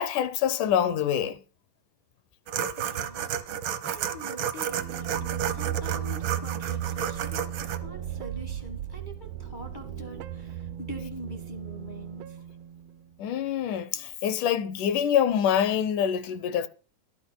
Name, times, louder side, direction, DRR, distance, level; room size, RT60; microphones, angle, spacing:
voice 1, 0.0-1.4 13.2-16.7, left 9 dB, 75° left, 2.4 m, -25 dB
sound 1, 2.5-7.8, right 9 dB, 70° right, 1.2 m, -32 dB
voice 2, 2.8-12.4, equal, 45° left, 0.5 m, -44 dB
sound 2, 4.6-13.2, right 11 dB, 90° right, 1.3 m, -36 dB
29.5 x 9.9 x 2.3 m
omnidirectional pair, 3.7 m